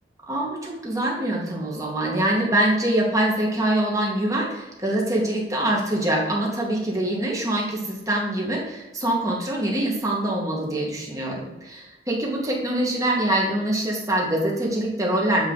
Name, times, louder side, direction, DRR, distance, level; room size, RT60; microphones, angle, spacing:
voice 1, 0.3-15.5, right 1 dB, 20° right, -2 dB, 1.8 m, -24 dB
8.2 x 4.7 x 4.0 m, 1.0 s
head